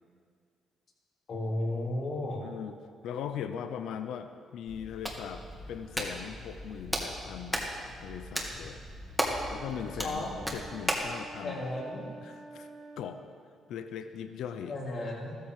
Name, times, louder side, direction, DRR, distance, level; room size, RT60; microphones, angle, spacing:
voice 1, 1.3-2.4 10.0-10.3 11.4-12.1 14.6-15.4, left 1 dB, 55° left, -3 dB, 3.6 m, -34 dB
voice 2, 2.4-2.7 3.0-7.6 8.0-8.8 9.5-10.3 10.5-11.6 12.2-12.7 13.0-13.2 13.7-14.7, left 8 dB, 80° left, 9 dB, 0.7 m, -39 dB
Hands, 4.7-11.2, equal, ahead, 2.2 m, -36 dB
sound 1, 9.3-13.2, right 2 dB, 55° right, 2.7 m, -49 dB
14.0 x 14.0 x 5.1 m, 2.2 s
cardioid pair, 90°, 0 cm